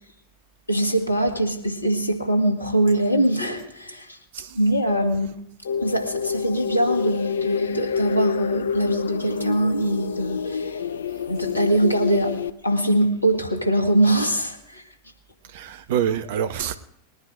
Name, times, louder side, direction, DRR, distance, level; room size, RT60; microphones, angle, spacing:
voice 1, 0.7-4.2 4.6-5.3 5.8-10.8 11.3-14.8, right 1 dB, 80° left, 1.8 m, -22 dB
sound 1, 5.6-12.5, left 7 dB, 65° left, 0.5 m, -27 dB
voice 2, 15.5-16.8, right 9 dB, 55° right, 0.9 m, -26 dB
20.5 x 9.8 x 5.0 m
figure-of-eight pair, 90°, 0 cm